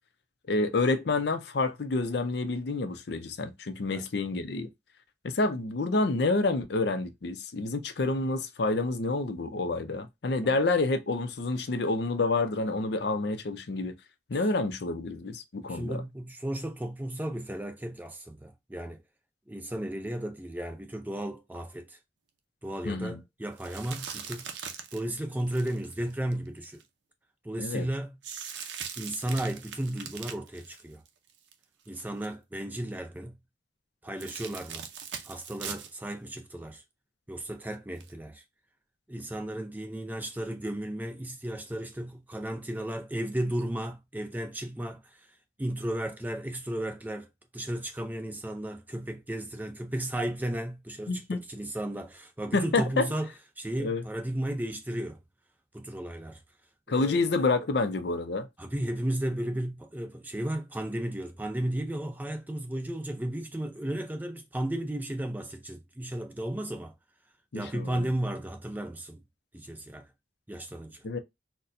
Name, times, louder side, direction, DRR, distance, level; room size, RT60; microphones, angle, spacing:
voice 1, 0.5-4.7 5.2-13.9 14.3-16.0 22.8-23.2 27.6-27.9 51.1-51.4 52.5-53.1 53.8-54.0 56.9-58.5 67.5-68.1 71.0-71.2, left 3 dB, 65° left, 0.5 m, -28 dB
voice 2, 15.7-19.0 19.5-22.0 22.6-24.5 24.9-26.8 27.4-28.2 29.0-31.0 31.9-33.4 34.0-34.8 35.2-36.8 37.3-38.4 39.1-45.3 45.6-47.3 47.5-53.3 53.6-55.2 55.7-56.4 56.9-57.3 58.6-66.9 67.5-69.2 69.5-70.0 70.5-71.0, right 1 dB, 10° right, 0.4 m, -34 dB
sound 1, 23.6-26.8 28.2-31.5 31.8-32.3 34.2-35.9 36.3-36.4 38.0-38.1, right 7 dB, 75° right, 0.6 m, -41 dB
4.1 x 2.2 x 2.5 m
head